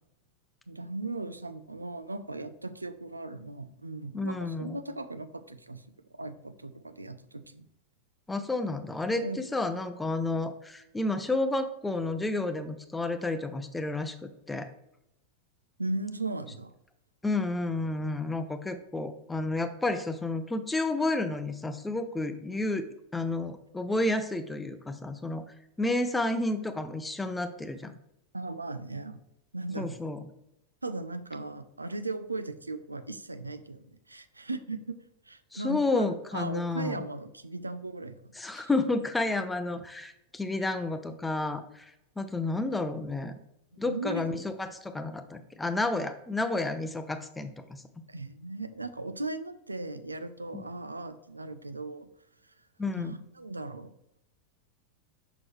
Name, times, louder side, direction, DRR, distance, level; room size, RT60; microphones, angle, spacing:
voice 1, 0.7-5.8 6.2-7.6 9.2-9.4 15.8-16.7 28.3-29.2 29.5-29.9 30.8-34.9 35.3-36.0 36.3-38.7 43.8-44.3 48.1-52.1 53.0-53.9, right 2 dB, 80° right, 11 dB, 0.4 m, -37 dB
voice 2, 4.1-4.8 8.3-14.7 17.2-25.4 25.8-28.0 29.8-30.2 35.5-37.1 38.4-43.3 43.8-47.8 50.5-50.6 52.8-53.2, left 2 dB, 10° left, 9 dB, 0.6 m, -31 dB
6.1 x 5.8 x 3.1 m, 0.83 s
figure-of-eight pair, 90°, 0 cm